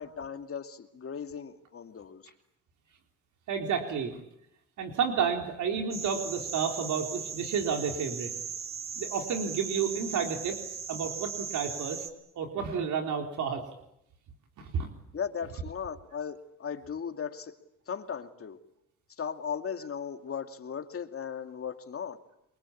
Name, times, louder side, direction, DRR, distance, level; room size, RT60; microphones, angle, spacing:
voice 1, 0.0-2.3 15.1-17.5 17.9-18.6 19.2-22.2, left 7 dB, 50° left, 6 dB, 2.6 m, -37 dB
voice 2, 3.5-4.2 4.8-8.3 9.0-10.6 10.9-12.1 12.4-13.6 14.6-14.9, right 6 dB, 75° right, 3 dB, 3.8 m, -31 dB
sound 1, 5.9-12.1, right 6 dB, 45° right, 4.3 m, -38 dB
27.0 x 23.0 x 8.7 m, 0.79 s
cardioid pair, 90°, 30 cm